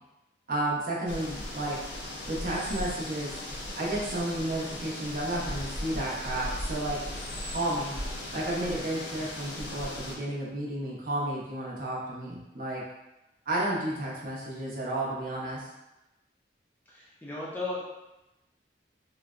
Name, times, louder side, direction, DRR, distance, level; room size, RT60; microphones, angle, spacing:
voice 1, 0.5-1.8 2.3-3.4 3.7-7.0 7.4-7.9 8.3-12.8 13.5-15.7, right 1 dB, 50° right, -5 dB, 0.7 m, -32 dB
sound 1, 1.1-10.1, left 1 dB, 70° left, 0.6 m, -37 dB
voice 2, 16.9-17.8, left 2 dB, 10° left, -6 dB, 0.4 m, -35 dB
3.8 x 2.1 x 2.4 m, 0.95 s
head